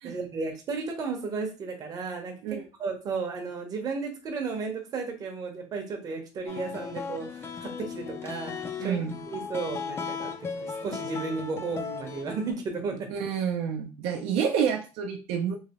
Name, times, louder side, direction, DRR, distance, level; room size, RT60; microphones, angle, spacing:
voice 1, 0.0-9.0 9.3-10.3 10.6-13.1, right 4 dB, 35° right, 3 dB, 0.7 m, -34 dB
sound 1, 6.5-12.5, left 5 dB, 25° left, 0.4 m, -36 dB
voice 2, 8.8-9.1 13.1-15.6, right 7 dB, 70° right, 2 dB, 0.5 m, -28 dB
3.2 x 2.8 x 2.9 m, 0.33 s
cardioid pair, 155°, 11 cm